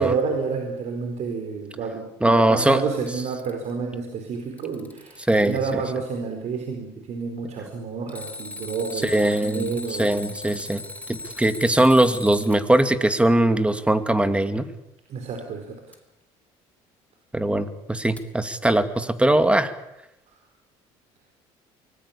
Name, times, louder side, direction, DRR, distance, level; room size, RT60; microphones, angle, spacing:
voice 1, 0.0-10.2 15.1-15.8, right 5 dB, 55° right, 4 dB, 4.6 m, -29 dB
voice 2, 2.2-2.8 5.3-5.6 9.0-9.7 10.0-10.8 11.4-14.6 17.3-19.7, right 1 dB, 10° right, 10 dB, 2.4 m, -20 dB
Alarm, 2.9-3.7 4.4-5.7 8.1-12.6 15.9-16.0 18.2-18.3, left 2 dB, 10° left, 3.1 m, -39 dB
24.0 x 20.0 x 8.8 m, 0.87 s
supercardioid pair, 85°, 14 cm